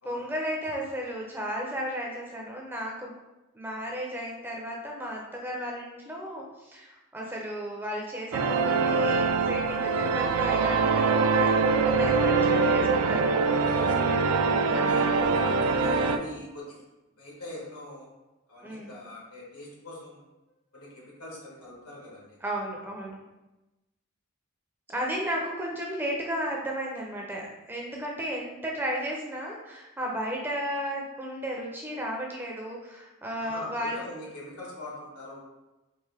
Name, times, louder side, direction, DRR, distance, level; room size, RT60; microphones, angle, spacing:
voice 1, 0.0-3.1 3.5-13.5 14.6-15.1 18.6-19.0 22.4-23.2 24.9-34.0, equal, 10° right, -1 dB, 0.4 m, -34 dB
sound 1, 8.3-16.2, right 4 dB, 90° right, 0.3 m, -23 dB
voice 2, 13.6-14.3 14.9-16.8 17.2-18.1 18.5-20.2 20.7-22.4 33.4-35.4, left 1 dB, 90° left, -4 dB, 1.4 m, -42 dB
4.5 x 2.5 x 3.3 m, 1.0 s
head